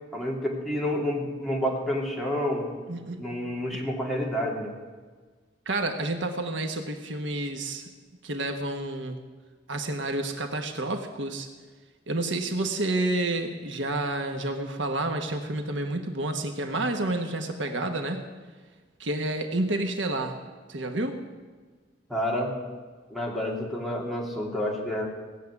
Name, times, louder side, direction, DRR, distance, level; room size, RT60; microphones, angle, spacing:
voice 1, 0.1-2.7 3.2-4.7 22.1-22.5 23.1-25.0, left 1 dB, ahead, -3 dB, 2.8 m, -29 dB
voice 2, 2.9-3.2 3.8-4.0 5.7-7.8 8.2-9.2 9.7-11.5 12.1-18.2 19.0-20.4 20.7-21.2, right 2 dB, 70° right, 5 dB, 1.3 m, -29 dB
17.5 x 7.6 x 9.6 m, 1.4 s
head